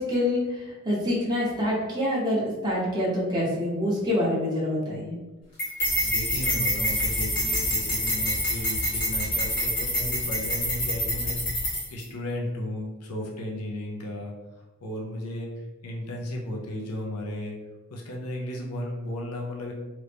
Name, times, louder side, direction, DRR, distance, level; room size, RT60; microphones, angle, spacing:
voice 1, 0.0-5.1, left 1 dB, 20° right, -7 dB, 0.7 m, -26 dB
sound 1, 5.6-12.0, equal, 35° left, 1.3 m, -27 dB
sound 2, 5.8-11.7, right 1 dB, 90° right, 0.6 m, -37 dB
voice 2, 6.0-14.3 14.8-15.5 15.8-17.5 17.9-19.7, left 1 dB, 85° left, -1 dB, 0.6 m, -34 dB
2.9 x 2.5 x 3.3 m, 1.1 s
head